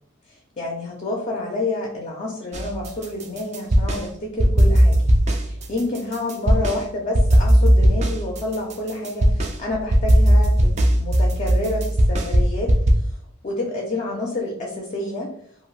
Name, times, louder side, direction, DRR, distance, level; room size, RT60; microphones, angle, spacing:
voice 1, 0.6-5.0 5.4-12.7 13.4-15.3, left 2 dB, 35° left, -1 dB, 0.5 m, -28 dB
sound 1, 2.5-4.0 4.4-6.8 7.1-12.9, equal, 35° right, 0.4 m, -17 dB
2.5 x 2.3 x 3.1 m, 0.65 s
head